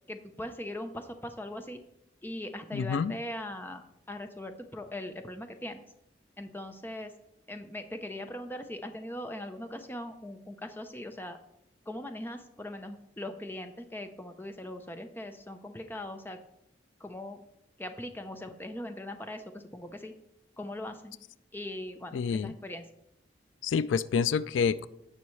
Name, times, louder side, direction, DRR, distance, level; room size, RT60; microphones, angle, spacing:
voice 1, 0.1-1.8 2.2-5.8 6.4-7.1 7.5-11.4 11.9-16.4 17.0-17.4 17.8-20.1 20.6-21.2 21.5-22.8, left 1 dB, 10° left, 0.6 m, -40 dB
voice 2, 2.7-3.2 22.1-22.5 23.6-24.9, left 6 dB, 85° left, 0.3 m, -28 dB
16.5 x 5.5 x 3.2 m
head